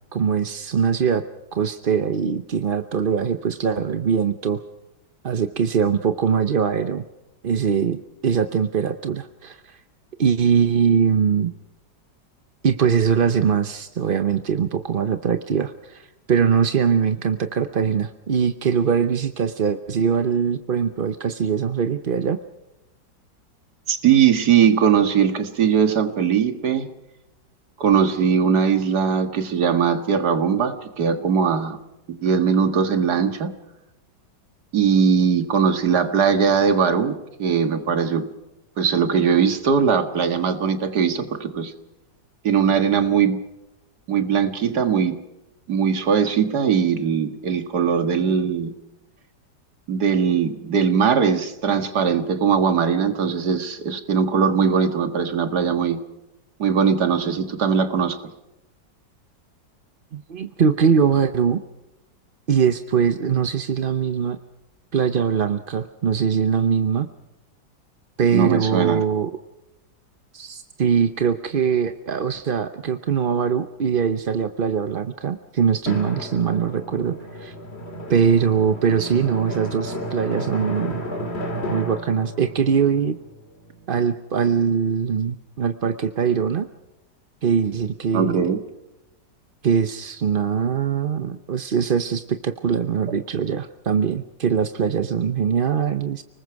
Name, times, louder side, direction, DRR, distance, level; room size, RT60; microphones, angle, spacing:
voice 1, 0.1-1.2 1.5-4.6 5.2-7.0 7.4-9.8 10.2-11.5 12.6-22.4 60.1-61.6 62.5-64.4 64.9-67.1 68.2-69.3 70.3-77.5 78.1-81.1 81.7-83.2 83.9-86.7 87.4-88.5 89.6-96.2, right 6 dB, 45° right, 9 dB, 0.7 m, -22 dB
voice 2, 23.9-26.9 27.8-31.8 32.1-33.5 34.7-38.3 38.8-41.7 42.4-43.4 44.1-45.2 45.7-48.7 49.9-56.0 56.6-58.2 68.3-69.0 88.1-88.6, right 7 dB, 65° right, 8 dB, 2.2 m, -20 dB
Drum, 75.9-84.1, equal, 35° left, 2.2 m, -33 dB
30.0 x 20.0 x 4.7 m, 0.95 s
omnidirectional pair, 1.9 m